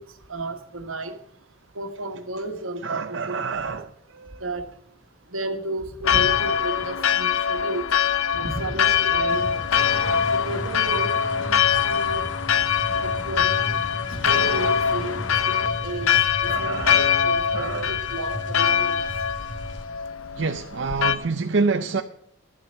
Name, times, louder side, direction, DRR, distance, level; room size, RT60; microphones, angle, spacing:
voice 1, 0.3-1.1 1.7-3.8 4.4-4.7 5.3-7.8 8.3-9.7 10.3-11.1 11.4-12.2 13.0-13.7 14.1-16.1 16.4-18.9, right 2 dB, 80° right, 1.4 m, -32 dB
voice 2, 2.8-3.9 4.2-4.4 16.1-17.2 17.5-18.0 20.4-22.0, right 4 dB, 60° right, 0.5 m, -27 dB
Church bell, 6.0-21.2, left 8 dB, 80° left, 0.7 m, -23 dB
sound 1, 9.3-19.9, equal, 55° left, 1.8 m, -36 dB
11.5 x 7.8 x 6.5 m
head